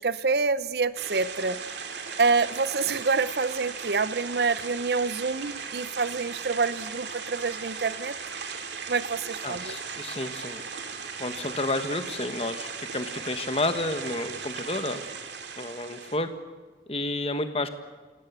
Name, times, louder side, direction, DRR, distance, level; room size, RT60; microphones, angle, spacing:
voice 1, 0.0-1.6 2.2-8.2 8.9-9.8, right 4 dB, 65° right, 15 dB, 0.7 m, -27 dB
sound 1, 0.9-16.2, right 5 dB, 85° right, 2.3 m, -37 dB
voice 2, 9.4-10.6 11.2-15.0 15.6-16.3 16.9-17.7, left 2 dB, 35° left, 9 dB, 1.4 m, -30 dB
28.5 x 17.0 x 8.2 m, 1.3 s
head